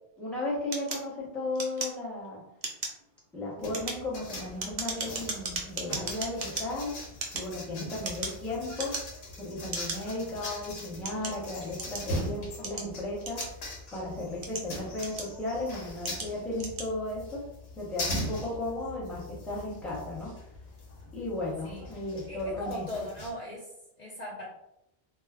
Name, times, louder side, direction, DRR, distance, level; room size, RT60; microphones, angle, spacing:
voice 1, 0.2-2.4 3.3-6.9 7.3-9.0 9.4-13.4 13.9-17.4 17.8-20.3 21.1-22.8, left 2 dB, ahead, -6 dB, 0.6 m, -35 dB
sound 1, 0.7-2.3 2.6-3.0 3.6-6.6 7.1-8.4 8.7-9.3 9.7-10.0 10.6-12.1 12.6-13.8 14.3-15.5 16.0-16.3 16.6-16.9, right 3 dB, 45° right, 0.5 m, -36 dB
sound 2, 3.6-23.3, left 1 dB, 85° left, 1.0 m, -41 dB
voice 2, 21.6-21.9 22.3-23.7 24.0-24.5, left 1 dB, 50° left, -6 dB, 0.6 m, -38 dB
2.2 x 2.1 x 3.4 m, 0.82 s
omnidirectional pair, 1.0 m